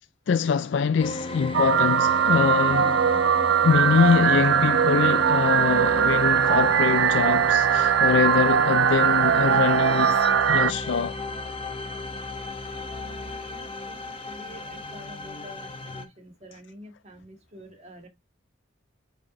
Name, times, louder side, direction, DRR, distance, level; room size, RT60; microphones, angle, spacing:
voice 1, 0.3-3.1 3.6-10.2 10.5-11.2, left 6 dB, 65° left, 0.3 m, -23 dB
sound 1, 1.0-16.0, left 2 dB, 25° left, 1.0 m, -34 dB
sound 2, 1.5-10.7, right 8 dB, 65° right, 0.4 m, -21 dB
voice 2, 12.9-18.1, equal, 35° right, 1.9 m, -47 dB
8.5 x 5.0 x 3.1 m
head